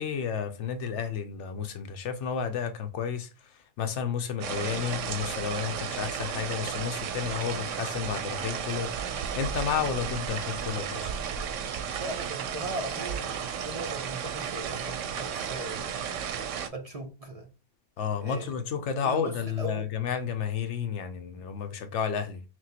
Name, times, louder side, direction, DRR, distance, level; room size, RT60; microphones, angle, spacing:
voice 1, 0.0-11.1 18.0-22.4, left 7 dB, 75° left, 0.9 m, -32 dB
sound 1, 4.4-16.7, right 7 dB, 85° right, 1.0 m, -33 dB
voice 2, 12.0-15.9 16.7-17.5 18.2-18.5 19.0-19.9, right 1 dB, 35° right, 0.7 m, -38 dB
6.0 x 2.2 x 2.9 m
omnidirectional pair, 1.2 m